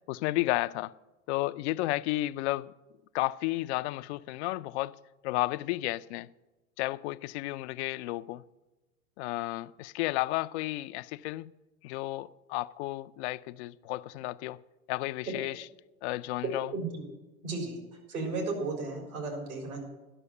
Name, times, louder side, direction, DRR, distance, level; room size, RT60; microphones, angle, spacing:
voice 1, 0.1-0.9 1.3-2.7 3.1-4.9 5.2-6.3 6.8-8.4 9.2-11.5 11.8-14.6 14.9-15.7 16.0-16.7, left 18 dB, 50° left, 0.5 m, -32 dB
voice 2, 16.7-17.0 17.4-17.8 18.1-19.8, right 3 dB, 80° right, 4.1 m, -34 dB
11.0 x 6.3 x 8.1 m
hypercardioid pair, 100°, 44 cm